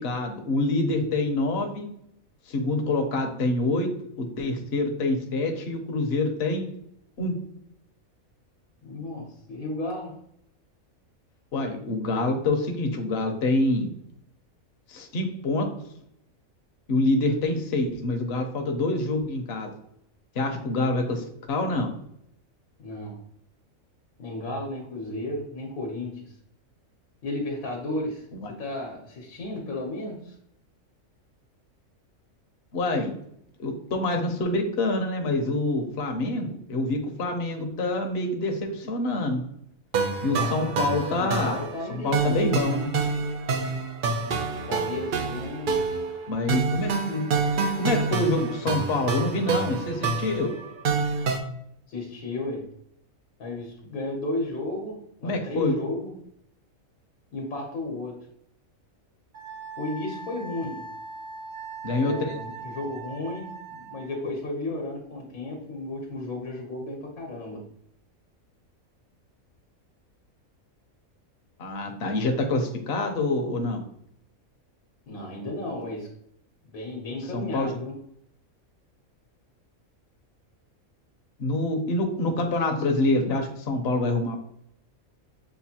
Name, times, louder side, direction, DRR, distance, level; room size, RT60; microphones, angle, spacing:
voice 1, 0.0-1.9 2.5-3.9 4.2-6.7 7.2-7.3 11.5-13.9 14.9-15.7 16.9-19.7 20.4-21.9 28.4-28.5 32.7-33.1 33.6-39.4 40.2-41.6 41.9-42.9 46.3-47.2 47.8-50.5 55.2-55.8 61.8-62.3 71.6-73.8 77.3-77.7 81.4-84.4, left 2 dB, 55° left, 3 dB, 0.9 m, -26 dB
voice 2, 8.8-10.2 22.8-23.2 24.2-26.3 27.2-30.4 40.4-42.8 44.7-45.8 51.9-52.7 53.4-56.3 57.3-58.3 59.8-60.9 61.9-67.7 75.1-76.1 76.7-78.0 81.8-81.9, left 2 dB, 80° left, -1 dB, 1.3 m, -34 dB
sound 1, 39.9-51.4, right 4 dB, 65° right, 0.5 m, -27 dB
Wind instrument woodwind instrument, 59.3-64.2, right 4 dB, 85° right, 1.9 m, -40 dB
6.8 x 2.5 x 2.8 m, 0.72 s
omnidirectional pair, 1.5 m